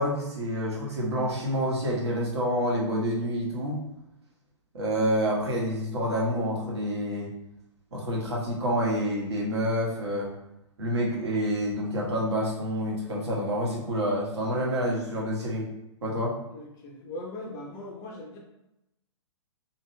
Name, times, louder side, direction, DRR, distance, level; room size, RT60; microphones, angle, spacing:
voice 1, 0.0-3.8 4.7-7.3 7.9-10.3 10.8-15.7 16.0-16.3, equal, 60° right, -4 dB, 1.2 m, -28 dB
voice 2, 16.5-18.4, left 1 dB, 20° left, 0 dB, 0.5 m, -40 dB
2.8 x 2.8 x 3.2 m, 0.88 s
figure-of-eight pair, 120°, 16 cm